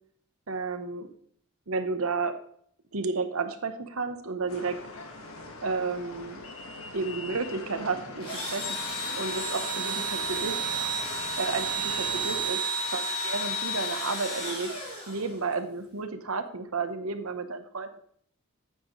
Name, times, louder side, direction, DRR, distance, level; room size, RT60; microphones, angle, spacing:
voice 1, 0.5-1.1 1.7-2.4 2.9-4.8 5.6-6.4 6.9-10.6 11.4-12.6 12.8-14.7 15.1-18.0, right 4 dB, 75° right, 9 dB, 1.0 m, -32 dB
sound 1, 4.5-12.5, left 3 dB, 75° left, 1.6 m, -42 dB
Engine / Drill, 8.2-15.5, right 2 dB, 25° left, 4.4 m, -32 dB
9.3 x 8.7 x 3.2 m, 0.63 s
head